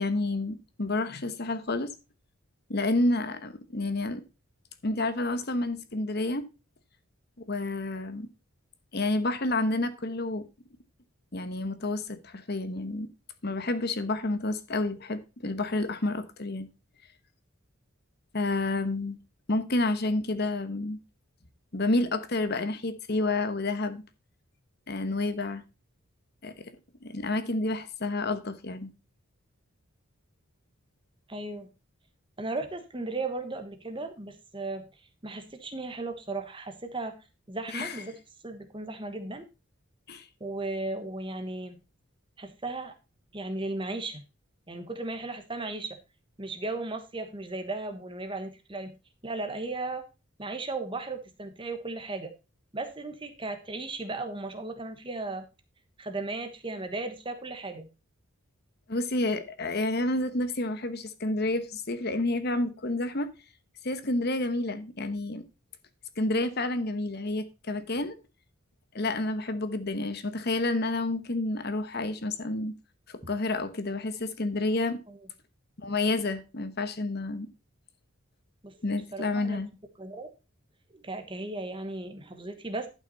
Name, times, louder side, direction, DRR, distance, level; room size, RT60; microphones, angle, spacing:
voice 1, 0.0-1.9 2.7-4.2 4.8-6.4 7.5-8.3 8.9-10.5 11.3-13.1 13.4-16.7 18.3-19.2 19.5-21.0 21.7-24.0 24.9-25.6 26.4-26.7 27.0-28.9 37.7-38.0 40.1-40.3 58.9-63.3 63.8-65.4 66.2-68.2 68.9-72.7 73.1-75.0 75.8-77.5 78.8-79.7, left 2 dB, 50° left, 1.1 m, -29 dB
voice 2, 31.3-31.7 32.4-34.9 35.2-37.2 37.5-38.2 38.4-39.4 40.4-41.8 42.4-42.9 43.3-44.2 44.7-46.0 46.4-48.9 49.2-50.0 50.4-52.3 52.7-55.4 56.0-57.9 75.1-75.2 78.6-78.7 79.1-79.6 80.0-80.3 80.9-82.9, right 2 dB, 25° right, 1.2 m, -36 dB
11.5 x 6.0 x 4.1 m
head